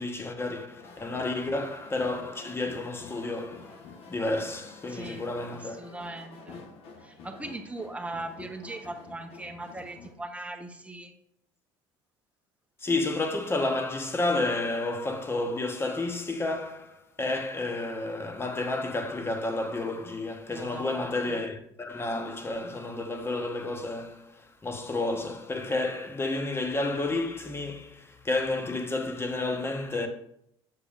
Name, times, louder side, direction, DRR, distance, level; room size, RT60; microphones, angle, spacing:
voice 1, 0.0-5.8 12.8-30.1, left 2 dB, 20° left, 1.0 m, -31 dB
sound 1, 0.7-10.1, left 4 dB, 55° left, 1.2 m, -48 dB
voice 2, 4.9-5.2 5.5-6.6 7.0-11.1 20.5-21.4, right 2 dB, 10° right, 0.9 m, -40 dB
6.9 x 6.6 x 2.5 m
supercardioid pair, 85°, 12 cm